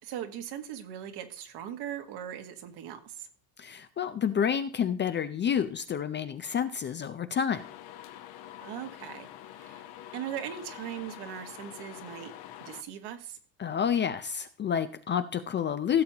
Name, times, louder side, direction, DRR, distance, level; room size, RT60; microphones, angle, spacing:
voice 1, 0.0-3.3 8.6-9.8 10.1-12.3 12.6-13.4, right 10 dB, 60° right, 7 dB, 1.6 m, -39 dB
voice 2, 3.6-7.7 13.6-16.0, left 8 dB, 25° left, 11 dB, 0.5 m, -29 dB
sound 1, 7.5-12.8, left 12 dB, 55° left, 1.1 m, -46 dB
16.0 x 6.9 x 2.9 m, 0.42 s
supercardioid pair, 125°, 46 cm